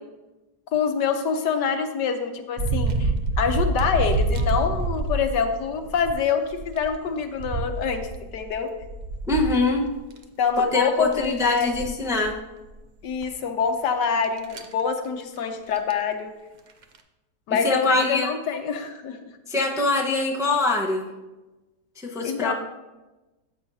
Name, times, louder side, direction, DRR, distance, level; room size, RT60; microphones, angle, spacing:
voice 1, 0.7-3.1 3.4-8.1 8.3-8.7 10.4-11.7 13.0-16.3 17.5-19.2 22.2-22.5, left 6 dB, 80° left, 6 dB, 1.5 m, -25 dB
sound 1, 2.6-6.1 6.5-10.2 10.6-10.7 11.0-12.3 12.7-12.8 13.2-13.3 14.2-14.7 15.8-15.9 16.7-17.0, right 2 dB, 85° right, 0.4 m, -27 dB
voice 2, 9.3-9.9 10.6-12.3 17.6-18.3 19.5-21.1 22.0-22.5, left 2 dB, ahead, -1 dB, 0.7 m, -24 dB
13.5 x 8.1 x 2.8 m, 1.1 s
omnidirectional pair, 1.8 m